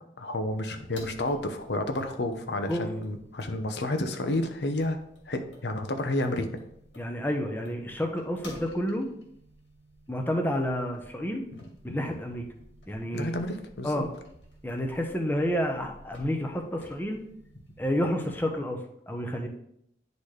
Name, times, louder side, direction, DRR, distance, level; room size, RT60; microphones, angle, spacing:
voice 1, 0.2-5.0 5.3-6.5 13.1-14.0, left 1 dB, 70° left, 7 dB, 0.8 m, -30 dB
sound 1, 0.6-18.6, equal, 85° left, 2.0 m, -53 dB
voice 2, 7.0-9.1 10.1-11.4 11.8-12.4 12.9-13.3 13.8-14.1 14.6-17.2 17.8-18.8 19.1-19.5, equal, 10° left, 3 dB, 0.7 m, -29 dB
10.0 x 4.0 x 3.2 m, 0.74 s
head